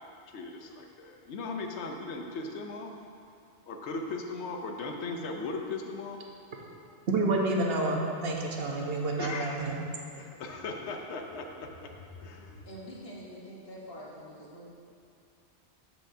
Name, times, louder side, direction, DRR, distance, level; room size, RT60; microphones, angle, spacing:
voice 1, 0.3-2.9 3.7-6.2 9.2-9.6 10.2-12.7, left 3 dB, 80° left, 3 dB, 0.9 m, -38 dB
voice 2, 7.1-9.8, right 2 dB, 60° right, 0 dB, 1.0 m, -29 dB
voice 3, 12.6-14.7, equal, 60° left, -4 dB, 1.4 m, -45 dB
13.5 x 4.8 x 2.7 m, 2.5 s
omnidirectional pair, 1.2 m